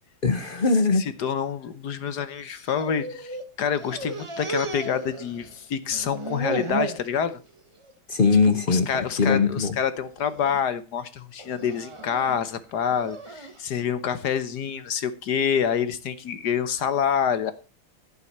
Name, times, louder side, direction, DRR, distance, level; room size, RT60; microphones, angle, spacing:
voice 1, 0.2-1.0 8.1-9.7, left 4 dB, 40° left, 0.8 m, -21 dB
voice 2, 0.9-7.4 8.4-17.5, left 7 dB, 60° left, 1.4 m, -27 dB
sound 1, 2.4-3.5 3.8-5.6 5.9-7.1 7.6-7.9 8.3-8.4 9.3-9.7 10.2-10.6 11.4-13.6, right 2 dB, 20° right, 0.9 m, -34 dB
11.0 x 9.7 x 4.2 m
omnidirectional pair, 2.1 m